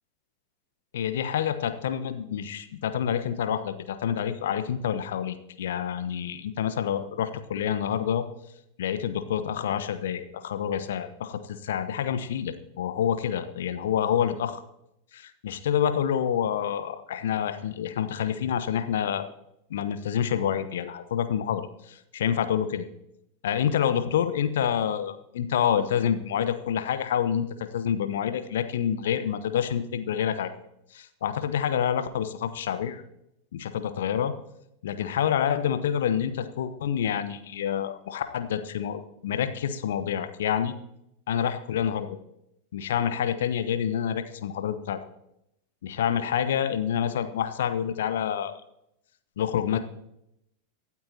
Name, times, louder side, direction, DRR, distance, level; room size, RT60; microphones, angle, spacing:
voice 1, 0.9-8.2 8.8-14.6 15.1-19.3 19.7-22.9 23.4-30.5 30.9-33.0 33.5-34.3 34.8-40.7 41.3-42.2 42.7-45.0 45.8-48.5 49.4-49.8, left 9 dB, 60° left, 10 dB, 1.1 m, -27 dB
24.0 x 8.9 x 2.9 m, 0.82 s
figure-of-eight pair, 90°, 0 cm